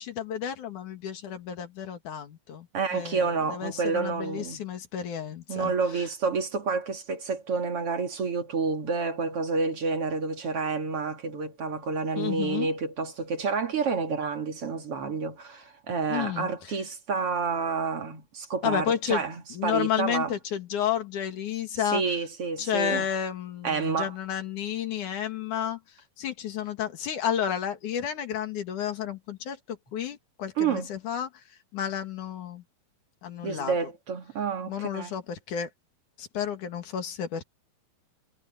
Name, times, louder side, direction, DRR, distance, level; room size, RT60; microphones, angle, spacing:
voice 1, 0.0-6.1 12.2-12.7 16.1-16.5 18.6-19.2 19.5-22.0 22.6-25.8 26.2-31.3 31.7-32.6 33.2-33.8 34.6-35.7 36.2-37.4, left 9 dB, 60° left, 3.3 m, -31 dB
voice 2, 2.7-4.6 5.5-20.3 21.9-23.0 23.6-24.1 30.6-30.9 33.4-35.1, right 5 dB, 45° right, 2.8 m, -29 dB
omnidirectional pair, 4.1 m